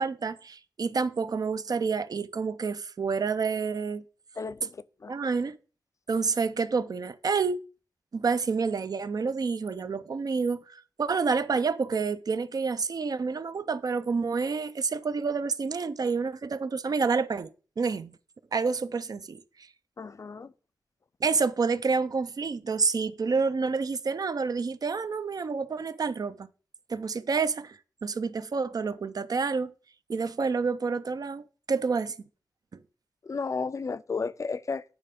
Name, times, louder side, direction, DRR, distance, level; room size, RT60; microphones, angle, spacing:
voice 1, 0.0-4.0 5.1-5.6 6.1-7.6 8.1-17.5 17.8-18.1 18.5-19.4 21.2-26.5 26.9-27.8 28.0-29.7 30.1-32.1, right 5 dB, 60° right, 0.5 m, -28 dB
voice 2, 4.4-5.1 20.0-20.5 33.2-34.8, left 4 dB, 45° left, 0.4 m, -33 dB
8.7 x 3.3 x 5.1 m
wide cardioid pair, 75°, 7 cm